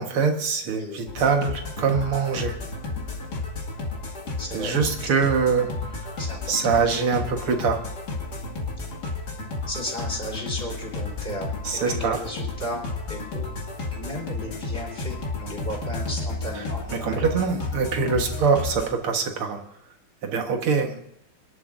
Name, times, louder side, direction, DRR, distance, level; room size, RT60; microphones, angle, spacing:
voice 1, 0.0-2.5 4.5-5.7 6.5-7.8 11.6-12.2 16.6-16.7 16.9-19.6 20.2-21.0, right 5 dB, 85° right, 4 dB, 2.4 m, -24 dB
sound 1, 1.1-18.9, left 2 dB, 50° left, 2.6 m, -32 dB
voice 2, 4.4-4.7 6.2-6.4 9.7-13.5 13.9-17.3, left 1 dB, 25° left, -3 dB, 4.3 m, -35 dB
26.5 x 11.0 x 2.6 m, 0.75 s
omnidirectional pair, 2.3 m